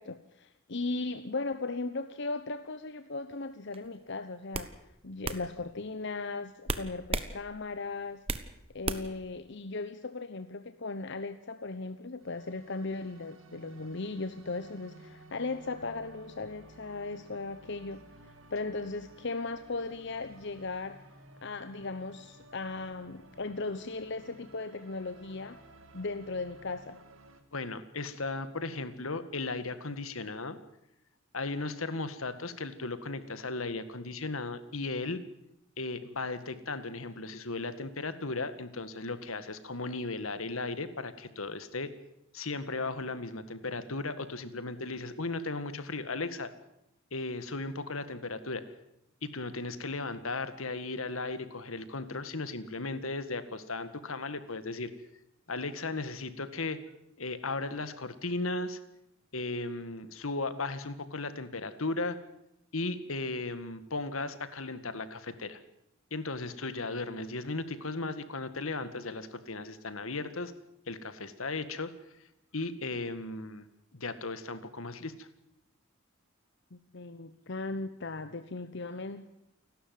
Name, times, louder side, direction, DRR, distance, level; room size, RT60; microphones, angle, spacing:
voice 1, 0.0-4.7 5.0-8.2 8.7-21.0 21.4-25.6 25.9-27.0 76.7-79.3, left 3 dB, 60° left, 10 dB, 1.0 m, -37 dB
sound 1, 3.7-4.0 4.5-4.7 5.2-5.4 6.7-7.3 7.7-8.5 8.8-9.2, right 3 dB, 30° right, 1.2 m, -33 dB
sound 2, 12.2-27.4, right 2 dB, 75° right, 2.4 m, -55 dB
voice 2, 27.5-30.6 31.3-35.2 35.8-41.9 42.3-46.5 47.1-48.6 49.2-54.9 55.5-56.8 57.2-58.8 59.3-62.2 62.7-65.6 66.1-70.5 70.9-71.9 72.5-73.7 73.9-75.3, left 3 dB, 80° left, 11 dB, 1.9 m, -36 dB
29.0 x 12.5 x 9.4 m, 0.83 s
head